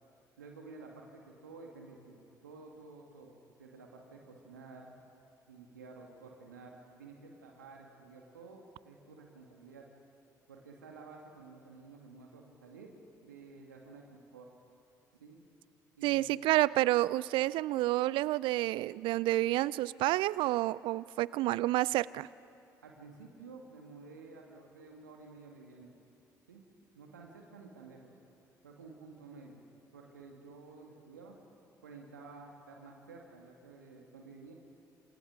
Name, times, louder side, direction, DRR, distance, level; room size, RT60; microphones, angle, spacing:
voice 1, 0.4-3.3 3.6-4.9 5.5-9.9 10.5-12.9 13.2-14.5 15.2-15.4 15.9-16.2 22.8-25.9 26.5-26.6 26.9-28.1 28.6-29.6 29.9-31.4 31.8-34.5, right 4 dB, 85° right, 1 dB, 2.3 m, -52 dB
voice 2, 16.0-22.3, right 17 dB, 60° right, 22 dB, 0.4 m, -29 dB
27.5 x 27.0 x 5.1 m, 2.6 s
figure-of-eight pair, 50°, 10 cm